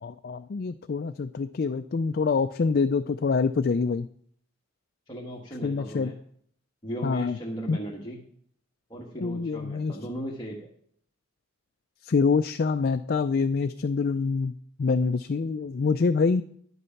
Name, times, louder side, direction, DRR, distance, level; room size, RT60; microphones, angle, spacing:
voice 1, 0.0-4.1 5.6-6.1 7.0-7.4 7.7-7.8 9.2-10.0 12.0-14.5 14.8-16.4, left 4 dB, 45° left, 9 dB, 0.4 m, -25 dB
voice 2, 5.1-6.2 6.8-8.2 8.9-10.7, right 1 dB, 20° left, -3 dB, 1.4 m, -37 dB
11.0 x 8.2 x 5.7 m, 0.63 s
head